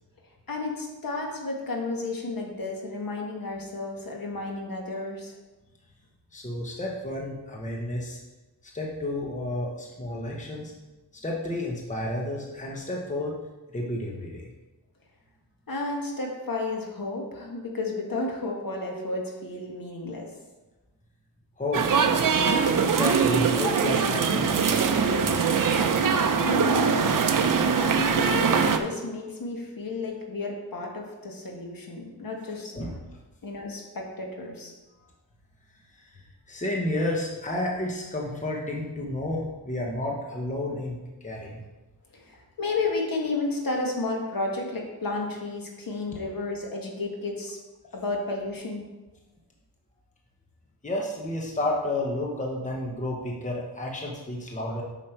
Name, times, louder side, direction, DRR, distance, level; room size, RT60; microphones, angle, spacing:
voice 1, 0.5-5.4 15.7-20.3 26.4-27.2 27.8-32.8 33.4-34.7 42.1-47.6 47.9-48.9, left 2 dB, 55° left, 0 dB, 1.6 m, -32 dB
voice 2, 6.3-8.2 8.6-10.7 11.2-13.3 13.7-14.5 21.6-21.9 22.7-25.6 32.8-33.0 36.0-36.2 36.5-41.6 50.8-54.8, left 1 dB, 20° left, -2 dB, 1.1 m, -31 dB
sound 1, 21.7-28.8, right 6 dB, 50° right, 0.6 m, -22 dB
7.5 x 6.4 x 4.5 m, 1.1 s
wide cardioid pair, 135°, 41 cm